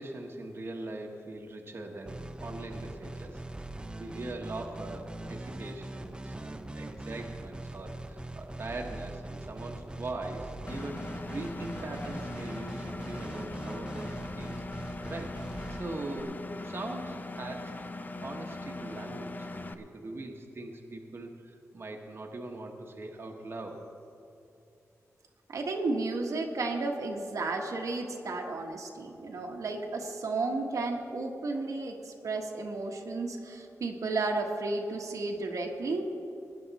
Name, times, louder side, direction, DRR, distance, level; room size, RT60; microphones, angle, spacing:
voice 1, 0.0-3.4 4.0-14.6 15.0-15.4 15.7-23.8, right 2 dB, 45° right, 1 dB, 1.2 m, -41 dB
sound 1, 2.1-16.2, right 1 dB, 15° right, 0.6 m, -42 dB
Engine, 10.7-19.7, left 2 dB, 30° left, 0.6 m, -40 dB
voice 2, 25.5-36.0, right 3 dB, 70° right, 1 dB, 1.3 m, -33 dB
19.5 x 9.5 x 4.1 m, 2.7 s
wide cardioid pair, 100°, 6 cm